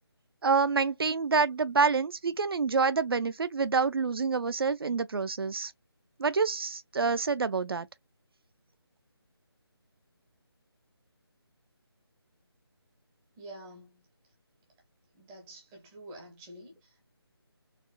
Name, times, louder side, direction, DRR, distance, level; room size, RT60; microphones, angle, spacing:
voice 1, 0.4-5.7 6.2-7.9, right 4 dB, 60° right, 0.5 m, -27 dB
voice 2, 13.4-14.1 15.1-17.0, right 1 dB, 5° right, 0.5 m, -48 dB
4.2 x 2.1 x 2.3 m
figure-of-eight pair, 165°, 14 cm